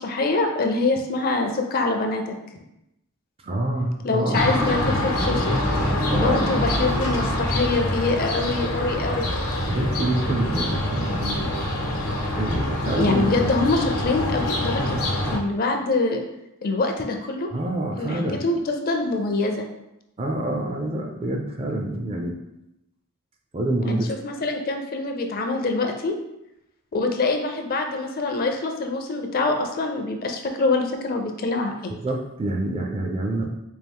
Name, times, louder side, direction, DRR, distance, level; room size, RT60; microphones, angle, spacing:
voice 1, 0.0-2.4 4.0-5.5 6.2-9.3 13.0-15.0 15.3-16.2 16.6-17.5 18.0-19.7 23.8-26.1 26.9-31.9, left 3 dB, 40° left, 4 dB, 0.4 m, -24 dB
voice 2, 3.4-4.4 6.1-6.5 9.6-11.6 12.4-13.2 17.5-18.4 20.2-22.4 23.5-24.1 31.9-33.6, right 1 dB, 25° right, 2 dB, 0.4 m, -27 dB
sound 1, 4.3-15.4, left 1 dB, 85° left, 0.9 m, -25 dB
4.5 x 2.4 x 3.5 m, 0.87 s
head